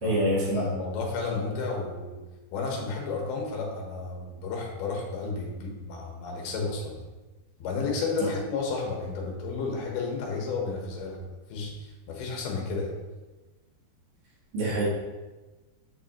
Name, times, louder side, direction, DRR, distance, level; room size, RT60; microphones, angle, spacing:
voice 1, 0.0-0.6 8.2-8.3 14.5-14.8, right 1 dB, 55° right, -6 dB, 3.2 m, -26 dB
voice 2, 0.5-2.2 2.5-7.0 7.6-11.2 11.5-13.0, left 4 dB, 70° left, -1 dB, 3.1 m, -32 dB
7.6 x 6.7 x 3.1 m, 1.2 s
omnidirectional pair, 5.0 m